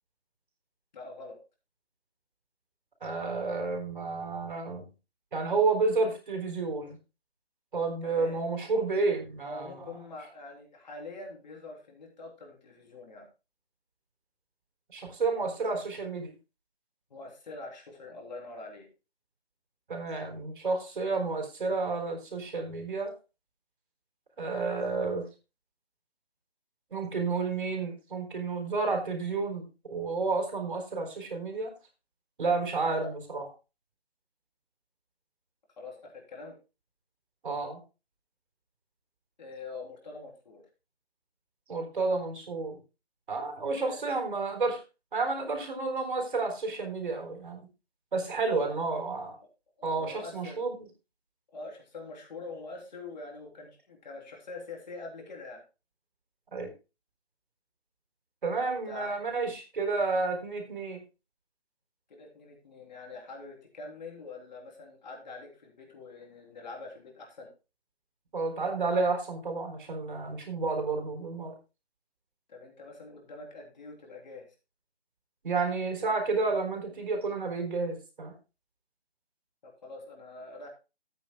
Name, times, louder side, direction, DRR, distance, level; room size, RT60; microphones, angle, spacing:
voice 1, 0.9-1.4 8.0-8.4 9.4-13.2 17.1-18.9 32.9-33.1 35.8-36.5 39.4-40.6 43.8-44.0 48.6-48.8 49.8-50.6 51.5-55.6 58.7-59.1 62.1-67.5 72.5-74.5 79.6-80.7, left 3 dB, 40° left, 1 dB, 3.3 m, -44 dB
voice 2, 3.0-4.8 5.3-7.0 7.7-9.8 14.9-16.3 19.9-23.1 24.4-25.3 26.9-31.7 32.4-33.5 37.4-37.8 41.7-42.8 43.3-44.8 45.1-47.7 48.1-49.3 49.8-50.9 56.5-56.7 58.4-61.0 68.3-71.6 75.4-78.3, right 3 dB, 50° right, 4 dB, 3.9 m, -31 dB
15.0 x 9.1 x 2.2 m, 0.29 s
figure-of-eight pair, 160°, 33 cm